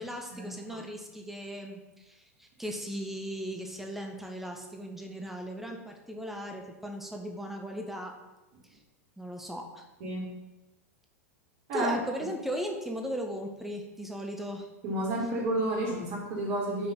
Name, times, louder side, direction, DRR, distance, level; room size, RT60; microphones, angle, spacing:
voice 1, 0.0-8.1 8.7-8.8 9.2-9.9 11.7-14.7, equal, 5° right, 2 dB, 1.0 m, -37 dB
voice 2, 14.8-16.9, right 1 dB, 50° right, -3 dB, 2.2 m, -30 dB
5.5 x 4.1 x 5.3 m, 1.0 s
figure-of-eight pair, 95°, 9 cm